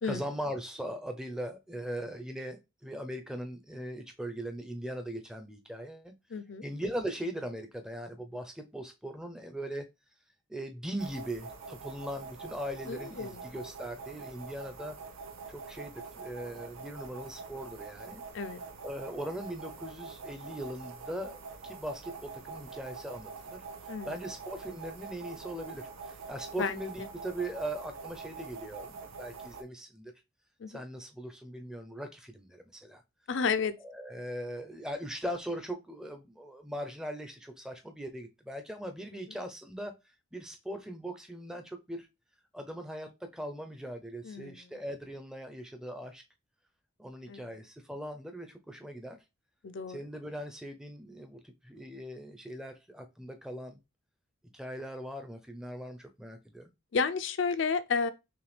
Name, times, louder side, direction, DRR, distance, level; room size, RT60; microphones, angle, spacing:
voice 1, 0.0-6.1 6.6-9.9 10.5-15.0 15.5-18.2 18.8-23.6 24.0-30.1 30.7-33.0 33.8-42.1 42.5-46.2 47.0-49.2 49.9-53.8 54.5-56.7, right 1 dB, 5° right, 0.5 m, -40 dB
voice 2, 6.3-6.6 12.9-13.4 18.3-18.6 23.9-24.1 26.6-26.7 30.6-30.8 33.3-33.7 44.2-44.5 47.3-47.5 49.6-50.0 56.9-58.1, left 5 dB, 60° left, 0.4 m, -31 dB
sound 1, 11.0-29.6, right 4 dB, 80° right, 0.8 m, -45 dB
5.8 x 2.3 x 3.3 m
head